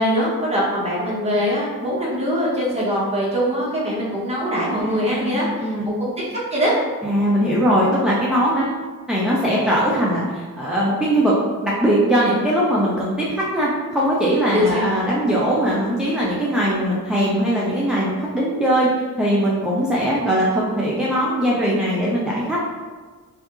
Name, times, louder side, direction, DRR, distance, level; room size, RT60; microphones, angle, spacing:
voice 1, 0.0-5.7 6.0-6.8 14.5-14.8, equal, 20° right, -8 dB, 1.0 m, -22 dB
voice 2, 4.7-5.3 5.6-5.9 7.0-8.8 9.1-11.4 11.6-22.6, equal, ahead, -6 dB, 0.3 m, -20 dB
2.8 x 2.3 x 3.5 m, 1.4 s
wide cardioid pair, 165°, 34 cm